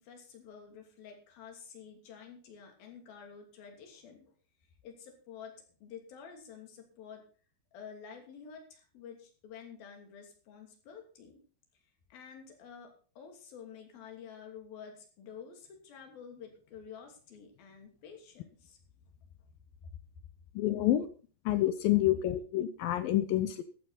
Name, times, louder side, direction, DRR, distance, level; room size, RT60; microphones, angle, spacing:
voice 1, 0.0-4.2 4.8-5.5 5.8-7.2 7.7-11.4 12.1-18.8 19.8-19.9, left 7 dB, 60° left, 3 dB, 4.4 m, -50 dB
voice 2, 20.6-21.1 21.5-23.6, left 13 dB, 75° left, 12 dB, 2.2 m, -28 dB
14.0 x 12.5 x 4.1 m, 0.39 s
omnidirectional pair, 4.9 m